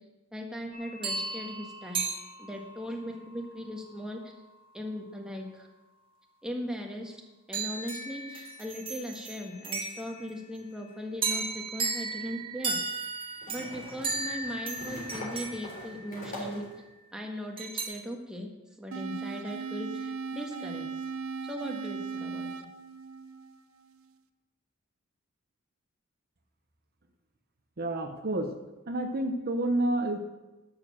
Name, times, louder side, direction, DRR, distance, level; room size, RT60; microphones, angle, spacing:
voice 1, 0.3-2.0 2.4-4.3 4.7-5.7 6.4-7.2 7.5-12.8 13.5-16.7 17.1-18.5 18.8-20.9 21.4-22.5, equal, 5° right, 0 dB, 1.5 m, -38 dB
sound 1, 0.7-2.9 7.5-10.4 11.2-16.6 17.6-17.9, right 4 dB, 25° right, 1.7 m, -35 dB
sound 2, 11.4-11.5 13.4-16.8, left 1 dB, 40° left, 3.7 m, -42 dB
sound 3, 18.9-23.9, right 5 dB, 85° right, 0.7 m, -38 dB
voice 2, 27.8-28.5 28.9-30.2, right 1 dB, 45° right, 5 dB, 1.0 m, -29 dB
11.5 x 6.9 x 7.3 m, 1.1 s
head